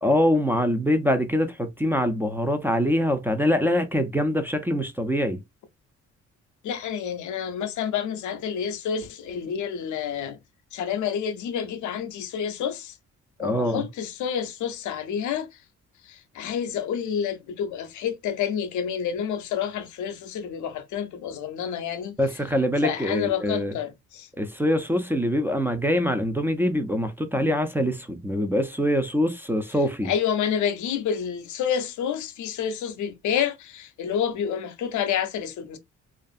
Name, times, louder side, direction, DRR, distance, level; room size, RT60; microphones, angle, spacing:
voice 1, 0.0-5.4 13.4-13.8 22.2-23.7 24.4-30.1, equal, 5° right, 0.4 m, -24 dB
voice 2, 6.6-10.4 10.7-13.0 13.4-15.6 16.0-22.4 22.8-24.3 30.0-35.8, left 8 dB, 75° left, 0.6 m, -29 dB
2.4 x 2.4 x 2.4 m
cardioid pair, 90°, 30 cm